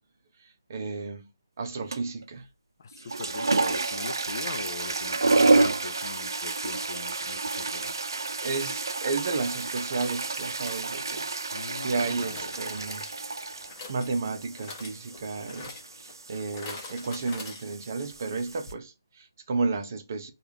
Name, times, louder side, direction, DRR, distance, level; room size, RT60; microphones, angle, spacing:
voice 1, 0.7-1.3 1.6-2.5 8.4-11.2 11.8-13.1 13.9-20.3, right 4 dB, 45° right, 0.7 m, -32 dB
sound 1, 1.9-2.2 2.9-18.7, right 3 dB, 75° right, 0.5 m, -30 dB
voice 2, 2.8-7.9 11.5-12.5, left 4 dB, 50° left, 0.4 m, -41 dB
sound 2, 11.1-11.2 12.3-18.1 18.4-18.5 18.7-18.8, left 3 dB, 20° left, 1.0 m, -45 dB
3.3 x 2.4 x 2.8 m
hypercardioid pair, 160°, 2 cm